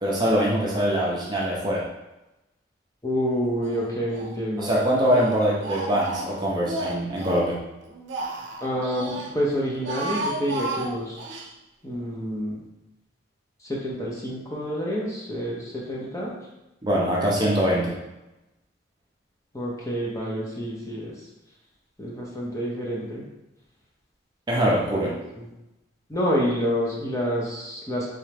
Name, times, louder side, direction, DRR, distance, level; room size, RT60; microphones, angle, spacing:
voice 1, 0.0-1.9 4.6-7.6 16.8-17.9 24.5-25.1, equal, 20° right, -4 dB, 0.6 m, -23 dB
voice 2, 3.0-4.7 8.6-11.2 11.8-12.6 13.6-16.3 19.5-21.1 22.0-23.2 25.0-25.5 26.1-28.1, equal, 15° left, -4 dB, 0.8 m, -28 dB
Speech, 3.6-4.3 4.6-7.5 7.8-9.3 9.7-11.5, right 2 dB, 70° right, 0.5 m, -33 dB
3.6 x 3.2 x 3.3 m, 0.95 s
head